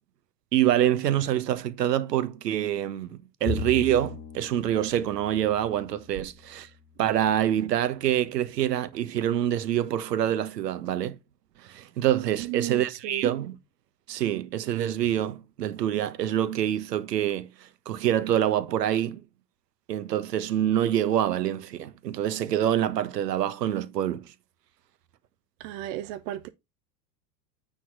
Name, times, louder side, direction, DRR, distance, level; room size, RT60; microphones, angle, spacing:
voice 1, 0.5-6.7 7.0-11.2 11.6-13.6 14.1-19.2 19.9-24.3, right 11 dB, 70° right, 1.4 m, -26 dB
Bowed string instrument, 3.5-7.0, left 6 dB, 15° left, 2.0 m, -38 dB
voice 2, 12.4-13.3 25.6-26.5, right 14 dB, 40° right, 0.8 m, -34 dB
9.3 x 4.2 x 4.7 m
hypercardioid pair, 95°, 50 cm